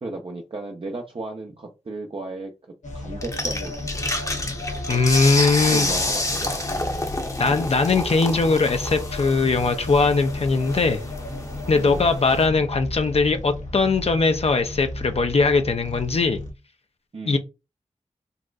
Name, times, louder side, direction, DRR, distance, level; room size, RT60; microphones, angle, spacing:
voice 1, 0.0-4.1 5.7-6.9 7.2-7.4 11.7-12.0 17.1-17.4, right 2 dB, 45° right, 1 dB, 0.6 m, -35 dB
sound 1, 2.8-16.5, left 2 dB, 80° left, 0.9 m, -34 dB
sound 2, 3.2-12.5, left 2 dB, 25° left, 0.8 m, -29 dB
voice 2, 4.9-5.9 7.4-11.0 11.7-16.4 17.3-17.4, left 4 dB, 55° left, 7 dB, 0.5 m, -20 dB
4.0 x 2.4 x 2.3 m, 0.27 s
cardioid pair, 45°, 12 cm